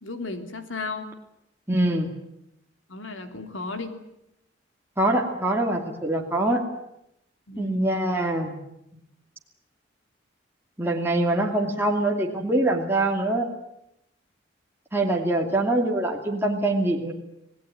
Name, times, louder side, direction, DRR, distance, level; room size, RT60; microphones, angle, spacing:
voice 1, 0.0-1.1 2.9-4.0 7.5-7.9, left 3 dB, 85° left, 7 dB, 3.2 m, -34 dB
voice 2, 1.7-2.1 5.0-6.6 7.6-8.6 10.8-13.5 14.9-17.1, right 1 dB, 10° right, 0 dB, 2.6 m, -24 dB
27.5 x 19.0 x 9.3 m, 0.81 s
head